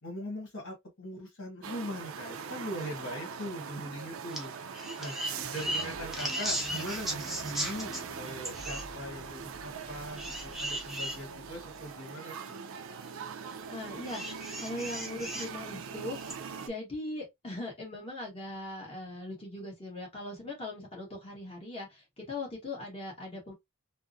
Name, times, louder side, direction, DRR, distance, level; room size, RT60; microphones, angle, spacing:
voice 1, 0.0-4.5 5.0-5.1 5.5-12.5, equal, 60° left, 1.4 m, -41 dB
sound 1, 1.6-16.7, right 6 dB, 65° right, 0.4 m, -42 dB
sound 2, 4.3-4.4 4.7-8.0 8.4-8.9 10.2-11.2 11.9-12.0 14.0-15.5 16.2-16.3, right 1 dB, ahead, 0.6 m, -36 dB
sound 3, 5.3-11.9, equal, 45° left, 1.0 m, -51 dB
voice 2, 13.7-16.4 16.6-23.5, left 2 dB, 25° left, 1.3 m, -40 dB
3.4 x 2.0 x 2.5 m
head